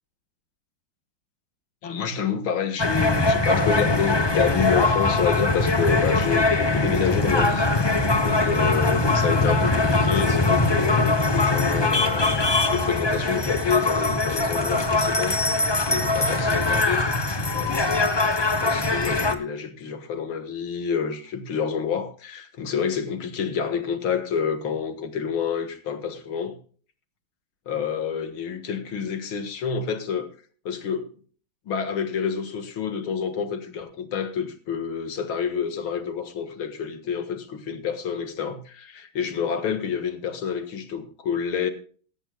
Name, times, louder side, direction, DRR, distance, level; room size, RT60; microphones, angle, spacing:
voice 1, 1.8-7.7 8.2-17.0 17.5-17.9 18.6-26.6 27.7-30.3 30.7-31.1 31.7-41.7, left 7 dB, 85° left, 2.4 m, -28 dB
sound 1, 2.8-19.4, left 2 dB, 30° left, 0.5 m, -22 dB
17.5 x 13.5 x 2.3 m
omnidirectional pair, 2.2 m